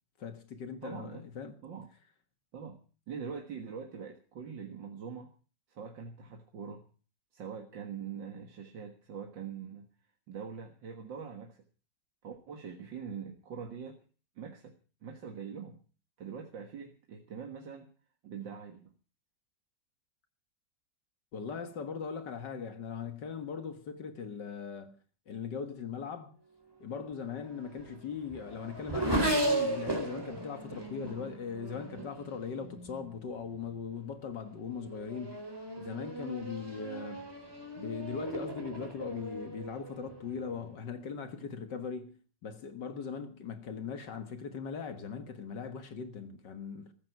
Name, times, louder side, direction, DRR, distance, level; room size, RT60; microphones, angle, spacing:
voice 1, 0.2-1.6 21.3-25.0 25.3-26.4 26.8-35.5 35.8-37.2 37.8-46.9, left 6 dB, 70° left, 2.1 m, -40 dB
voice 2, 0.8-1.3 1.6-1.9 2.5-2.8 3.1-5.3 5.7-6.8 7.3-9.9 10.3-11.6 12.2-14.0 14.4-14.8 15.0-15.8 16.2-17.9 18.2-18.9, right 6 dB, 80° right, 2.3 m, -43 dB
Race car auto racing / Accelerating revving vroom, 27.2-33.1 33.9-34.3 34.7-40.6, right 1 dB, 10° right, 4.2 m, -36 dB
14.5 x 14.5 x 5.9 m
omnidirectional pair, 2.0 m